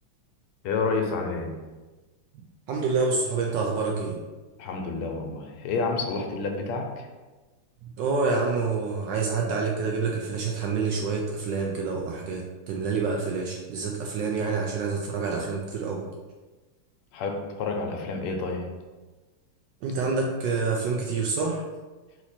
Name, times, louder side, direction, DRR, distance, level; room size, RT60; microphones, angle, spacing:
voice 1, 0.6-1.6 4.6-7.1 17.1-18.7, left 4 dB, 90° left, 3 dB, 1.6 m, -29 dB
voice 2, 2.3-4.2 8.0-16.0 19.8-21.6, right 4 dB, 75° right, 0 dB, 1.0 m, -27 dB
4.2 x 2.9 x 4.1 m, 1.2 s
omnidirectional pair, 2.3 m